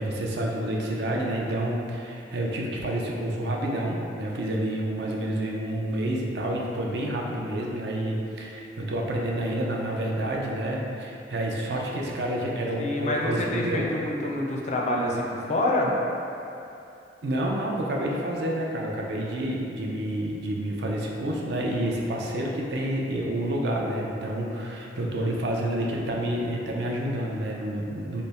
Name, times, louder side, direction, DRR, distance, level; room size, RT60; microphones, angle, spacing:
voice 1, 0.0-13.9 17.2-28.2, right 1 dB, 70° right, -2 dB, 0.5 m, -29 dB
voice 2, 12.8-15.9, left 1 dB, 40° left, -1 dB, 0.4 m, -27 dB
3.3 x 2.0 x 4.0 m, 2.7 s
head